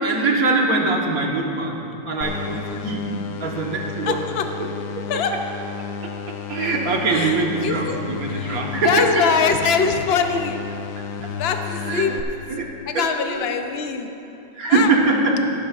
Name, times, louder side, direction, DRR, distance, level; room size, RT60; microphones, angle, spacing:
voice 1, 0.0-1.8 2.1-3.1 3.4-4.2 4.6-4.7 6.5-9.2 11.9-12.1 12.5-12.7 12.9-13.5 14.6-15.5, right 3 dB, 60° right, -1 dB, 1.7 m, -22 dB
sound 1, 2.2-12.2, left 6 dB, 85° left, 1.2 m, -32 dB
voice 2, 4.1-4.4 5.1-5.3 7.1-8.0 8.3-10.6 11.4-12.2 12.9-14.1 14.7-14.9, left 6 dB, 55° left, 6 dB, 0.7 m, -23 dB
16.0 x 12.5 x 2.5 m, 2.8 s
omnidirectional pair, 1.8 m